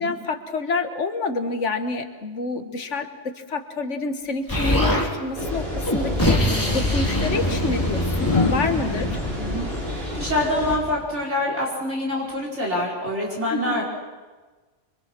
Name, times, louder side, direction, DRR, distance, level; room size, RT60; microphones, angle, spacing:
voice 1, 0.0-9.2 13.5-13.8, left 3 dB, 75° left, 7 dB, 1.8 m, -28 dB
Explosion, 4.5-5.1 5.9-9.7, left 1 dB, 15° left, 3.0 m, -24 dB
sound 1, 5.3-10.8, left 1 dB, 50° right, 6.6 m, -29 dB
sound 2, 6.7-6.8 8.2-11.2 12.8-13.1, left 4 dB, 30° left, 0.8 m, -28 dB
voice 2, 8.8-13.8, left 1 dB, 70° right, -4 dB, 5.1 m, -26 dB
27.0 x 24.0 x 6.1 m, 1.3 s
omnidirectional pair, 1.2 m